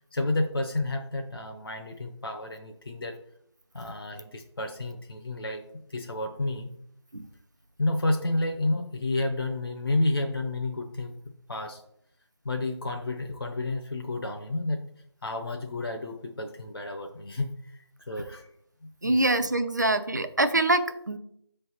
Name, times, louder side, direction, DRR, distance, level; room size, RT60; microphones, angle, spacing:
voice 1, 0.0-3.1 3.7-5.6 5.9-6.7 7.8-11.2 11.5-11.8 12.4-14.8 15.2-18.5 19.0-19.2, left 2 dB, 55° left, 3 dB, 0.7 m, -30 dB
voice 2, 19.0-21.2, right 2 dB, 40° right, 9 dB, 0.5 m, -24 dB
5.4 x 3.3 x 5.5 m, 0.72 s
figure-of-eight pair, 175°, 15 cm